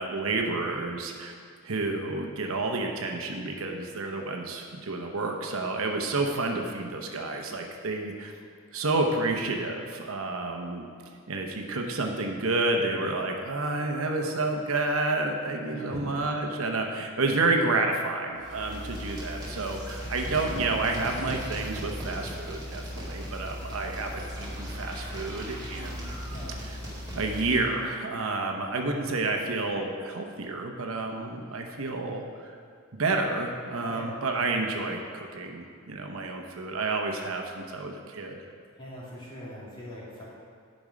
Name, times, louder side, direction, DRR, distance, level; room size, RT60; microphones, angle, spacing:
voice 1, 0.0-1.3 1.6-8.3 8.7-10.8 11.3-26.1 27.1-32.6 33.0-38.4, right 3 dB, 80° right, 3 dB, 0.9 m, -30 dB
voice 2, 15.6-16.1 26.3-26.6 28.6-29.1 33.9-34.1 38.8-40.2, equal, 25° left, -7 dB, 2.2 m, -42 dB
sound 1, 18.3-27.8, equal, 20° right, 2.4 m, -37 dB
10.5 x 5.3 x 5.1 m, 2.1 s
head